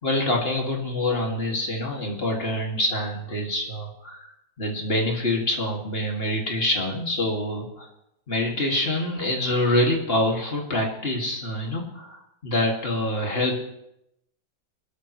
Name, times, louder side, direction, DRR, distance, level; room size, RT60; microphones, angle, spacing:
voice 1, 0.0-7.9 8.3-13.6, left 1 dB, 30° left, 0 dB, 2.4 m, -26 dB
22.0 x 13.0 x 3.2 m, 0.82 s
omnidirectional pair, 2.0 m